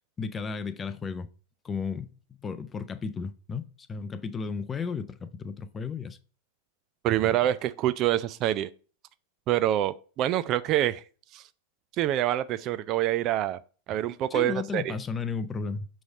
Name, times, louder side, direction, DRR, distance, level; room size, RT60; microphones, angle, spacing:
voice 1, 0.2-1.3 1.6-2.1 2.4-6.2 14.3-15.9, left 5 dB, 20° left, 0.5 m, -34 dB
voice 2, 7.0-8.7 9.5-11.0 11.3-11.4 12.0-13.6 13.9-14.9, right 13 dB, 35° right, 0.3 m, -26 dB
6.1 x 3.1 x 5.4 m
figure-of-eight pair, 90°, 0 cm